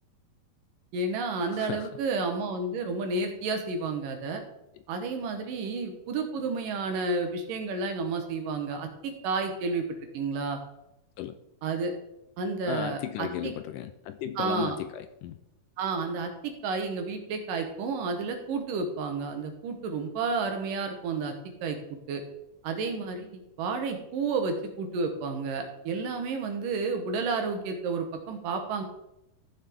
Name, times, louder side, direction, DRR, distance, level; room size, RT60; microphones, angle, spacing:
voice 1, 0.9-4.4 4.9-9.8 10.1-10.6 11.6-11.9 12.4-13.5 14.4-14.8 15.8-21.8 22.1-22.2 22.6-28.8, right 4 dB, 75° right, 5 dB, 2.8 m, -31 dB
voice 2, 1.5-1.9 11.2-11.3 12.7-15.4, left 12 dB, 80° left, 10 dB, 2.0 m, -35 dB
14.0 x 7.2 x 3.6 m, 0.88 s
omnidirectional pair, 4.1 m